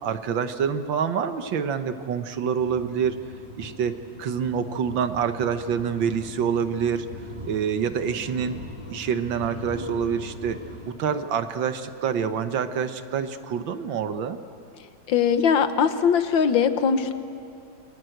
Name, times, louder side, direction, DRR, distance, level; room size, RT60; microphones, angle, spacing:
voice 1, 0.0-3.2 3.6-7.1 7.5-8.6 8.9-10.6 10.9-14.4, right 7 dB, 80° right, 9 dB, 1.9 m, -26 dB
sound 1, 2.6-10.9, equal, 15° right, 3.2 m, -41 dB
voice 2, 15.1-17.1, left 7 dB, 80° left, 10 dB, 1.9 m, -21 dB
28.5 x 21.5 x 7.9 m, 2.5 s
omnidirectional pair, 2.1 m